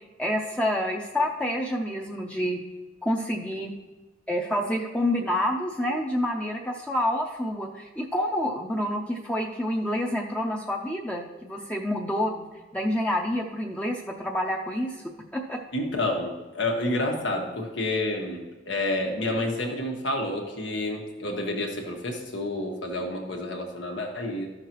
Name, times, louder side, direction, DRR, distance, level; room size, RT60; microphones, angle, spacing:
voice 1, 0.2-2.6 3.0-3.7 4.3-12.4 12.7-15.0 15.3-15.6, left 1 dB, 5° left, 0 dB, 0.5 m, -28 dB
voice 2, 15.7-18.4 18.7-24.5, left 1 dB, 90° left, 1 dB, 1.4 m, -29 dB
12.5 x 6.5 x 3.0 m, 1.2 s
head